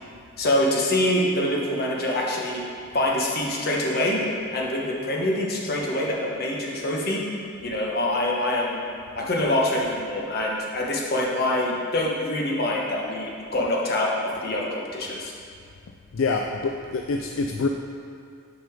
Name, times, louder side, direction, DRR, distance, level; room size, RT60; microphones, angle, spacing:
voice 1, 0.4-2.6 2.9-4.2 4.5-7.2 7.6-8.8 9.1-15.3, left 1 dB, 50° left, -3 dB, 1.1 m, -25 dB
voice 2, 16.1-17.7, left 4 dB, 65° left, 2 dB, 0.4 m, -26 dB
6.3 x 5.3 x 5.0 m, 2.3 s
head